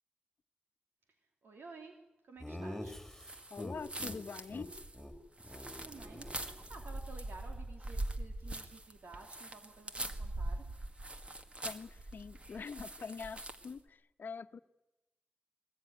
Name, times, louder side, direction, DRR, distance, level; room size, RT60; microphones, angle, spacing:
voice 1, 1.1-3.0 5.4-10.7, right 3 dB, 75° right, 3 dB, 2.9 m, -54 dB
Laughter, 2.4-4.2 4.5-4.7 4.9-5.1 5.4-7.0, left 1 dB, 5° left, 3.4 m, -45 dB
sound 1, 3.1-13.8, right 2 dB, 30° right, 1.8 m, -43 dB
voice 2, 3.5-4.7 11.6-14.6, left 5 dB, 60° left, 10 dB, 1.1 m, -44 dB
23.0 x 20.5 x 9.4 m, 0.95 s
wide cardioid pair, 90°, 4 cm